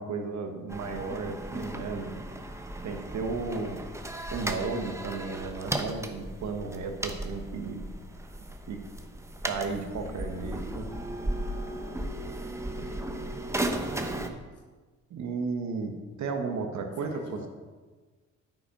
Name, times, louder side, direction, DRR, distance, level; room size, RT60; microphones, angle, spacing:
voice 1, 0.0-2.2 2.8-3.8 4.3-7.8 8.7-8.8 9.4-10.9 12.8-12.9 15.1-17.4, right 4 dB, 65° right, 5 dB, 1.5 m, -34 dB
sound 1, 0.7-14.3, right 1 dB, 10° right, 0.9 m, -36 dB
voice 2, 4.6-5.0 10.0-11.0 12.8-13.2 13.7-14.6 17.0-17.5, left 2 dB, 55° left, 2 dB, 2.0 m, -49 dB
9.4 x 8.3 x 5.3 m, 1.3 s
cardioid pair, 90°, 30 cm